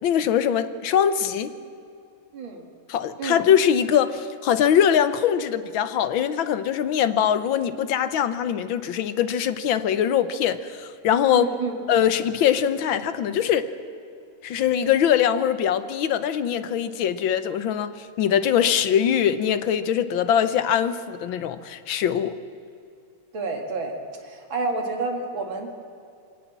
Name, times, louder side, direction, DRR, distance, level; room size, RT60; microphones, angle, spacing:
voice 1, 0.0-1.5 2.9-11.5 11.9-13.7 14.4-22.4, left 9 dB, 70° left, 13 dB, 1.6 m, -22 dB
voice 2, 2.3-2.6 3.2-3.4 11.3-11.8 23.3-23.9 24.2-25.8, right 3 dB, 65° right, 3 dB, 3.0 m, -29 dB
23.5 x 17.5 x 7.4 m, 2.5 s
omnidirectional pair, 2.3 m